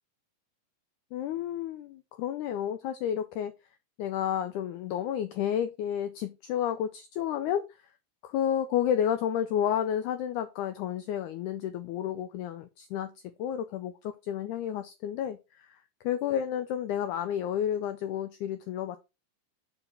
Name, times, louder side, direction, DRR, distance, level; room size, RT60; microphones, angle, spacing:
voice 1, 1.1-3.5 4.0-7.6 8.2-13.1 13.4-15.8 16.0-19.0, left 10 dB, 85° left, 1.7 m, -31 dB
5.5 x 4.7 x 4.9 m
omnidirectional pair, 4.1 m